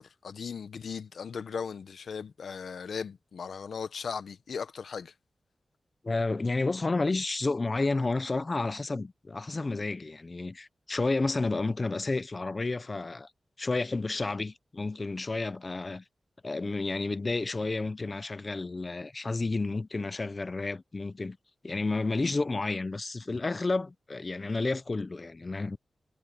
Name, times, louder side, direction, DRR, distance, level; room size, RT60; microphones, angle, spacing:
voice 1, 0.0-5.1, left 6 dB, 85° left, 0.8 m, -37 dB
voice 2, 6.0-13.3 13.6-16.0 16.4-21.4 21.6-25.8, left 3 dB, 30° left, 0.6 m, -31 dB
wide cardioid pair, 140°, 0 cm